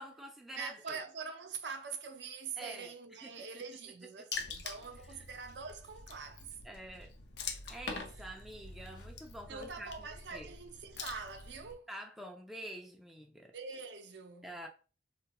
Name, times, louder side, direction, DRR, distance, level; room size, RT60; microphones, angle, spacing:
voice 1, 0.0-1.0 2.6-3.6 5.1-5.2 6.6-7.1 7.7-10.5 11.9-13.5 14.4-14.7, right 1 dB, ahead, 0.3 m, -47 dB
voice 2, 0.5-6.5 8.2-8.3 9.5-11.9 13.5-14.5, right 5 dB, 70° right, 0.5 m, -44 dB
Water / Splash splatter, 4.3-11.7, left 4 dB, 65° left, 0.5 m, -45 dB
3.7 x 2.3 x 2.8 m
head